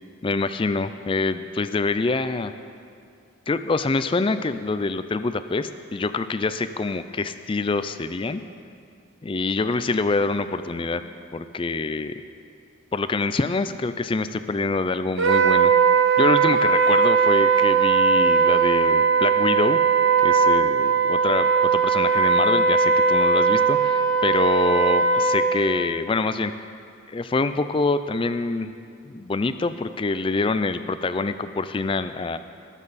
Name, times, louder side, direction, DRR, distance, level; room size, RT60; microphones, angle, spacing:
voice 1, 0.2-2.5 3.5-8.4 9.2-11.0 11.3-12.1 12.9-15.7 16.2-19.8 20.2-26.7 27.1-28.7 29.0-32.4, left 3 dB, 25° left, 12 dB, 0.3 m, -25 dB
Wind instrument woodwind instrument, 15.2-25.6, right 5 dB, 70° right, 0.7 m, -19 dB
19.5 x 7.4 x 4.1 m, 2.4 s
head